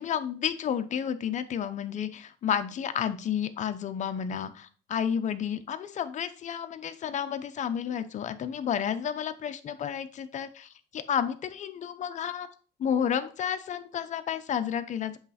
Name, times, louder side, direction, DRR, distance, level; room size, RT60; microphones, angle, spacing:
voice 1, 0.0-12.5 12.8-15.2, left 8 dB, 45° left, 9 dB, 0.7 m, -31 dB
8.0 x 3.2 x 4.1 m, 0.39 s
cardioid pair, 110°, 17 cm